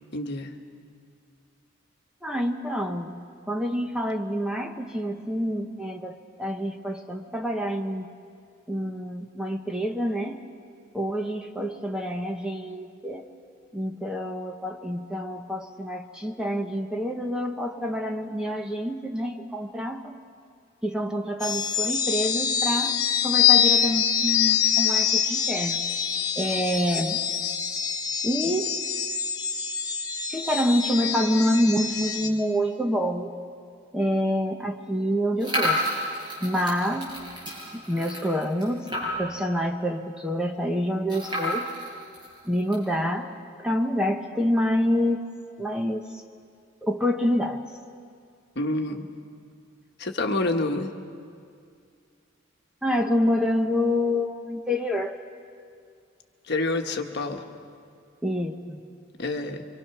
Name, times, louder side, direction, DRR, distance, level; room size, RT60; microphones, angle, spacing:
voice 1, 0.1-0.5 48.5-49.1 50.0-50.9 56.5-57.4 59.2-59.6, left 2 dB, 55° left, 4 dB, 1.3 m, -27 dB
voice 2, 2.2-3.1 3.5-8.1 8.7-10.5 10.9-13.3 13.7-20.1 20.8-25.8 26.4-27.2 28.2-28.8 30.3-33.3 33.9-35.9 36.4-37.2 37.7-41.7 42.4-43.3 43.6-45.2 45.6-46.2 46.8-47.6 52.8-55.2 58.2-58.8, equal, 5° right, 3 dB, 0.9 m, -27 dB
sound 1, 21.4-32.3, left 8 dB, 15° left, 1.5 m, -25 dB
sound 2, 35.4-39.4 39.8-39.9 40.1-40.2 41.1-42.8, left 1 dB, 20° right, 7.7 m, -31 dB
26.0 x 25.0 x 5.9 m, 2.3 s
head